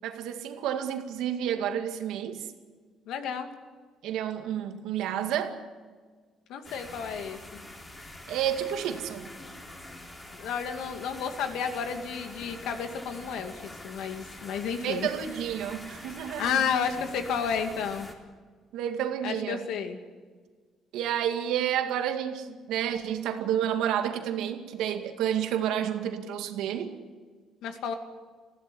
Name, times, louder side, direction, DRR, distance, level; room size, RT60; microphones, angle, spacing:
voice 1, 0.0-2.5 4.0-5.6 8.3-9.3 14.8-16.6 18.7-19.6 20.9-26.9, right 10 dB, 85° right, 6 dB, 2.1 m, -30 dB
voice 2, 3.1-3.5 6.5-7.6 10.3-15.1 16.4-18.1 19.2-20.0 27.6-27.9, left 7 dB, 80° left, 6 dB, 2.3 m, -31 dB
sound 1, 6.6-18.1, left 1 dB, 20° left, 3.9 m, -45 dB
20.0 x 15.5 x 9.5 m, 1.5 s
cardioid pair, 120°, 0 cm